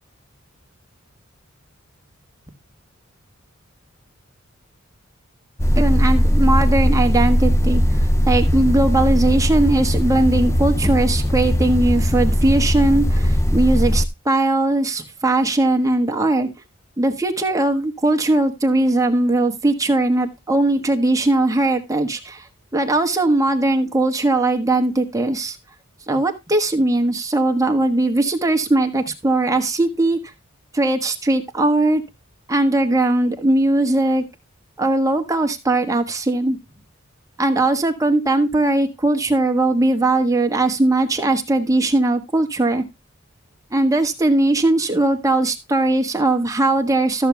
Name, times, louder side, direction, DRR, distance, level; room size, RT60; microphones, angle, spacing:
sound 1, 5.6-14.1, equal, 15° left, 0.6 m, -18 dB
voice 1, 5.7-7.8 8.3-16.5 17.0-22.5 22.7-25.6 26.1-30.2 30.7-32.0 32.5-34.2 34.8-36.6 37.4-42.8 43.7-47.3, right 2 dB, 15° right, 4 dB, 1.5 m, -19 dB
14.0 x 6.6 x 3.4 m, 0.23 s
head